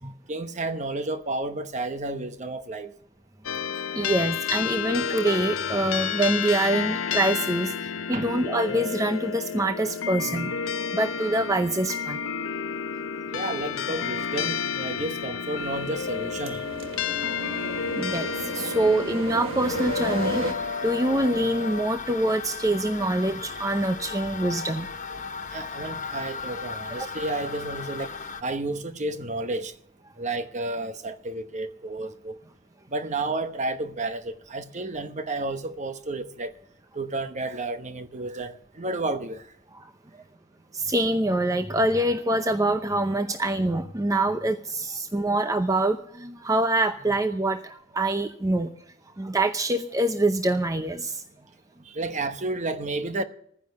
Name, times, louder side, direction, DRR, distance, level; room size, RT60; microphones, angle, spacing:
voice 1, 0.3-2.9 8.1-8.3 13.3-16.7 25.5-28.1 28.4-29.7 30.2-32.4 32.9-36.5 36.9-39.4 51.8-53.2, right 2 dB, 35° right, 1.0 m, -31 dB
sound 1, 3.4-21.9, left 7 dB, 80° left, 0.7 m, -31 dB
voice 2, 3.9-10.5 10.9-12.2 17.9-18.3 18.5-20.6 20.8-24.9 39.7-39.9 40.7-48.7 49.2-51.2, right 1 dB, 15° right, 0.7 m, -25 dB
sound 2, 15.6-20.5, right 2 dB, 70° right, 1.3 m, -34 dB
sound 3, 19.6-28.4, left 5 dB, 40° left, 0.9 m, -36 dB
14.0 x 10.0 x 6.7 m
head